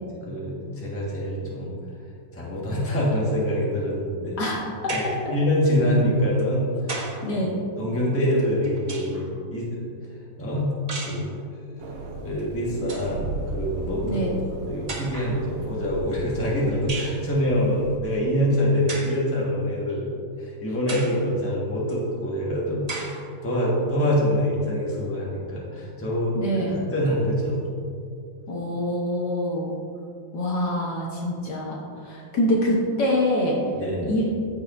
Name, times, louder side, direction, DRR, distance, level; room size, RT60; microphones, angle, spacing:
voice 1, 0.1-1.7 2.3-4.4 4.9-6.7 7.2-7.4 7.8-9.9 10.4-10.7 11.0-11.3 11.8-14.2 14.7-20.1 20.4-26.4 26.7-27.6 33.8-34.1, equal, 10° left, -6 dB, 1.2 m, -25 dB
voice 2, 4.4-5.3 7.2-7.5 14.0-14.3 26.3-26.8 28.5-29.7 30.3-33.6 34.1-34.4, equal, 60° left, -3 dB, 1.7 m, -25 dB
sound 1, 4.9-5.3 6.4-7.3 8.4-9.3 10.9-11.3 12.4-12.5 12.8-13.1 14.1-14.2 14.9-15.4 16.9-17.2 18.9-19.2 19.9-20.0 20.9-21.2 21.9-22.0 22.9-23.2, right 2 dB, 40° right, 0.5 m, -34 dB
sound 2, 11.8-18.0, right 2 dB, 70° right, 1.5 m, -36 dB
14.5 x 4.8 x 2.6 m, 2.4 s
omnidirectional pair, 2.1 m